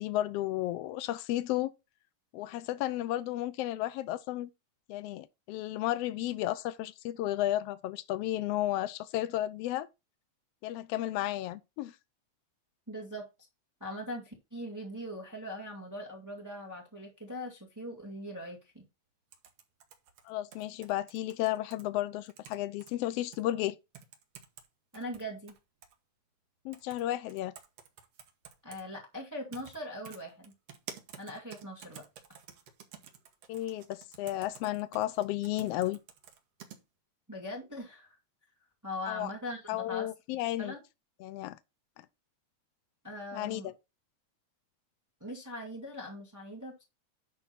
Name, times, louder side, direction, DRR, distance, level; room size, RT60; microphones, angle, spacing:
voice 1, 0.0-1.7 2.3-4.5 4.9-9.9 10.6-11.9 20.3-23.8 26.6-27.5 33.5-36.0 39.1-39.3 39.7-40.7 41.2-41.6 43.3-43.7, left 14 dB, 85° left, 1.4 m, -33 dB
voice 2, 12.9-13.3 13.8-18.8 24.9-25.5 28.6-30.5 31.2-32.0 37.3-38.2 38.8-40.1 40.6-40.8 43.0-43.7 45.2-46.8, left 1 dB, 5° right, 1.6 m, -41 dB
sound 1, 19.3-21.8 22.3-22.9 23.3-23.4 23.9-24.7 24.9-25.9 26.7-27.0 27.3-28.8 29.5-29.8 30.0-36.8, right 8 dB, 60° right, 2.2 m, -50 dB
10.5 x 3.6 x 5.7 m
omnidirectional pair, 3.4 m